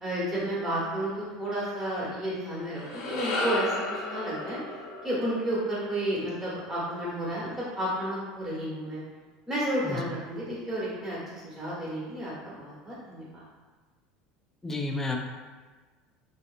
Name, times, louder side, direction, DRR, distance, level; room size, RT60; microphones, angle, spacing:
voice 1, 0.0-4.6 5.0-9.0 9.5-13.3, right 1 dB, 20° right, -8 dB, 1.2 m, -32 dB
sound 1, 2.6-7.0, left 2 dB, 85° left, 0.7 m, -35 dB
voice 2, 14.6-15.2, left 3 dB, 15° left, 2 dB, 0.3 m, -31 dB
2.8 x 2.4 x 2.5 m, 1.3 s
supercardioid pair, 115°, 3 cm